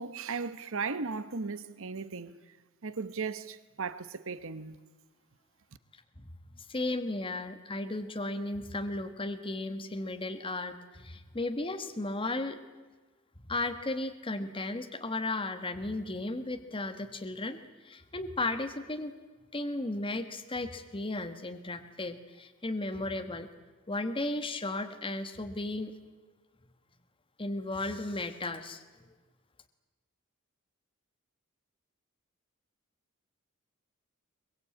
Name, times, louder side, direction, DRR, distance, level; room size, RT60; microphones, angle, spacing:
voice 1, 0.0-2.5 2.8-4.8, right 4 dB, 65° right, 1.0 m, -36 dB
voice 2, 6.7-12.6 13.5-19.1 19.5-23.5 23.9-25.9 27.4-28.8, left 2 dB, 25° left, 1.2 m, -35 dB
22.5 x 21.5 x 8.5 m
head